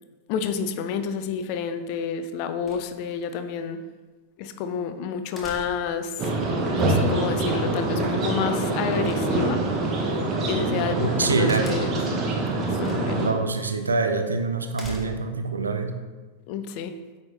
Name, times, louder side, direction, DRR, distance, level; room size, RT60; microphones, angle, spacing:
voice 1, 0.3-3.8 4.4-6.3 6.7-9.6 10.5-11.9 12.8-13.3 16.5-16.9, left 6 dB, 45° left, 9 dB, 0.5 m, -29 dB
sound 1, 2.7-3.3 5.4-6.0 9.0-9.8 11.5-12.1 12.8-13.3 13.6-13.7 14.7-15.4, left 1 dB, 15° left, 1.1 m, -42 dB
sound 2, 6.2-13.3, right 2 dB, 30° right, 1.0 m, -25 dB
voice 2, 10.9-11.7 13.2-16.0, right 4 dB, 75° right, 7 dB, 0.5 m, -25 dB
8.6 x 4.3 x 3.2 m, 1.3 s
figure-of-eight pair, 90°, 0 cm